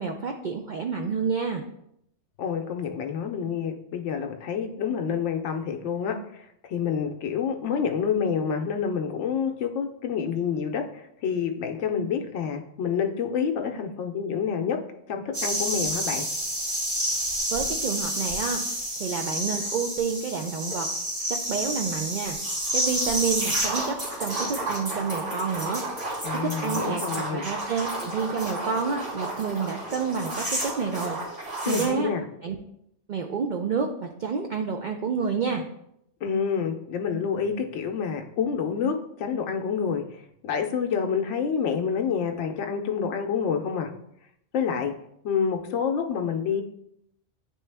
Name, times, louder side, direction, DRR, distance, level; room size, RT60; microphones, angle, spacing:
voice 1, 0.0-1.6 17.5-18.6 19.0-20.9 21.5-22.4 22.7-25.8 26.4-27.0 27.3-31.2 31.7-32.1 32.4-32.6 33.1-35.6, right 5 dB, 60° right, 3 dB, 0.5 m, -29 dB
voice 2, 2.4-14.8 15.1-16.3 26.2-27.5 31.6-32.2 36.2-43.9 44.5-44.9 45.2-46.6, left 6 dB, 80° left, 4 dB, 0.9 m, -28 dB
sound 1, 15.3-31.9, right 1 dB, 90° right, 2.6 m, -30 dB
9.2 x 3.1 x 3.3 m, 0.77 s
omnidirectional pair, 1.2 m